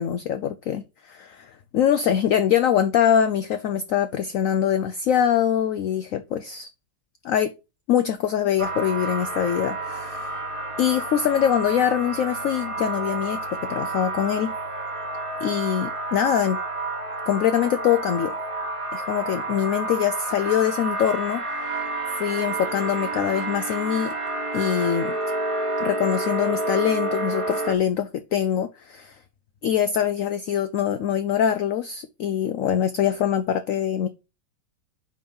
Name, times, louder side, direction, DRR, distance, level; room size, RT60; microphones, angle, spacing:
voice 1, 0.0-6.7 7.2-7.5 7.9-10.3 10.8-14.5 15.4-16.6 17.3-18.3 18.9-21.8 22.1-24.1 24.5-25.2 25.8-29.2 29.6-34.1, left 9 dB, 90° left, 0.7 m, -23 dB
sound 1, 8.6-27.7, right 2 dB, 20° right, 1.1 m, -29 dB
5.4 x 5.1 x 5.1 m
omnidirectional pair, 1.9 m